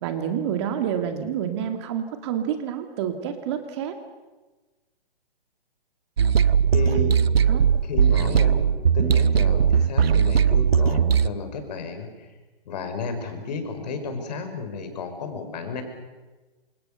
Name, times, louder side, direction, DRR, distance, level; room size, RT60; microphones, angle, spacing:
voice 1, 0.0-4.0 7.5-7.6, right 9 dB, 25° right, 7 dB, 2.1 m, -28 dB
sound 1, 6.2-11.3, right 7 dB, 75° right, 1.3 m, -19 dB
voice 2, 6.7-7.3 7.8-12.3 12.7-15.8, left 3 dB, 40° left, 7 dB, 5.3 m, -32 dB
28.5 x 27.0 x 6.9 m, 1.2 s
hypercardioid pair, 160°, 31 cm